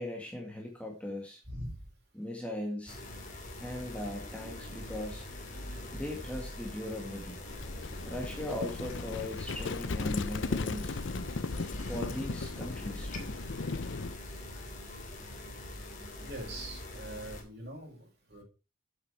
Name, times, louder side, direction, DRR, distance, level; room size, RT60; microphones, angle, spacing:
voice 1, 0.0-1.4 2.1-3.0 3.6-5.3 5.9-7.4 8.0-11.0 11.8-13.4 15.2-15.3, left 1 dB, 5° left, 0 dB, 1.9 m, -39 dB
voice 2, 1.5-1.8 16.2-18.4, right 1 dB, 50° right, 0 dB, 5.1 m, -43 dB
sound 1, 2.9-17.4, left 1 dB, 35° left, 3.0 m, -43 dB
Livestock farm animals working animals, 7.5-14.2, left 3 dB, 60° left, 0.6 m, -36 dB
9.4 x 8.3 x 4.6 m, 0.31 s
head